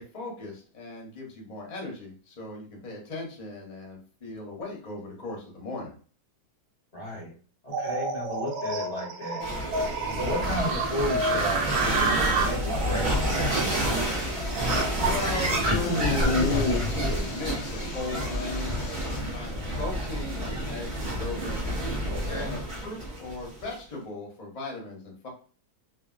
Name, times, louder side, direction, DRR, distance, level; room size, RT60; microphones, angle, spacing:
voice 1, 0.0-6.0 10.1-10.6 14.9-19.0 19.3-21.6 22.2-25.3, left 3 dB, 40° left, -1 dB, 0.6 m, -38 dB
voice 2, 6.9-7.3 7.6-9.4 10.2-13.6 22.1-22.5, left 1 dB, 85° left, -6 dB, 0.3 m, -33 dB
sound 1, 7.7-15.2, right 3 dB, 80° right, 1.3 m, -30 dB
sound 2, 9.4-23.7, equal, 45° right, 0.6 m, -29 dB
sound 3, 13.1-19.2, left 3 dB, 70° left, 1.0 m, -33 dB
3.4 x 2.1 x 2.4 m, 0.40 s
omnidirectional pair, 2.2 m